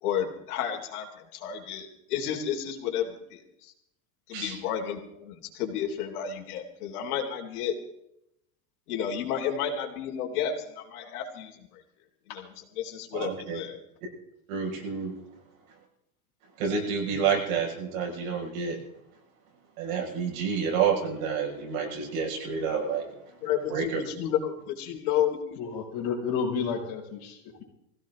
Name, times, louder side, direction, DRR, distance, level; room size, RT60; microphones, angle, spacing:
voice 1, 0.0-3.4 4.3-7.8 8.9-11.5 12.3-12.5 12.8-13.8 22.8-22.9 23.4-25.4, left 9 dB, 75° left, 3 dB, 3.5 m, -31 dB
voice 2, 13.1-13.6 14.5-15.2 16.6-18.8 19.8-23.1 23.7-24.0, right 6 dB, 65° right, 0 dB, 6.2 m, -29 dB
voice 3, 25.6-27.6, left 6 dB, 45° left, -1 dB, 5.6 m, -31 dB
20.5 x 16.5 x 3.9 m, 0.77 s
supercardioid pair, 160°, 44 cm